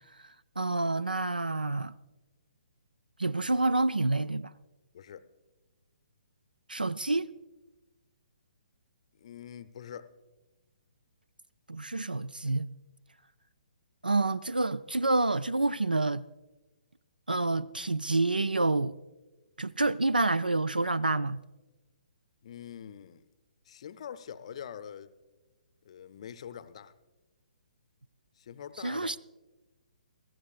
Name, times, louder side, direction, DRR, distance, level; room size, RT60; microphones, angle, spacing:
voice 1, 0.6-1.9 3.2-4.5 6.7-7.3 11.7-12.7 14.0-16.3 17.3-18.9 19.6-21.4 28.8-29.2, right 2 dB, 85° right, 0.3 m, -28 dB
voice 2, 4.9-5.3 9.2-10.1 22.4-23.2 23.6-25.1 25.8-26.9 28.4-29.2, left 8 dB, 45° left, 0.6 m, -44 dB
22.5 x 15.5 x 2.4 m
figure-of-eight pair, 130°, 5 cm